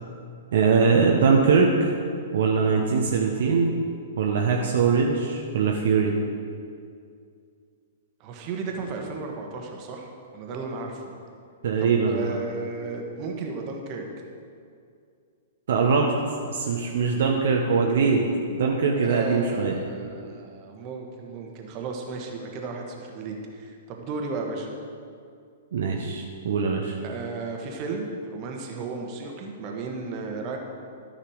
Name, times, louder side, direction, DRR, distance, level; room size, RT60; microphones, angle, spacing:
voice 1, 0.5-1.9 2.3-3.7 4.2-6.1 11.6-12.4 15.7-16.1 16.4-18.3 18.6-19.7 25.7-27.0, right 5 dB, 55° right, 0 dB, 0.9 m, -22 dB
voice 2, 8.2-11.1 11.8-14.0 19.0-24.7 27.0-30.6, right 4 dB, 35° right, 2 dB, 1.4 m, -34 dB
13.0 x 5.8 x 5.0 m, 2.3 s
figure-of-eight pair, 110°, 0 cm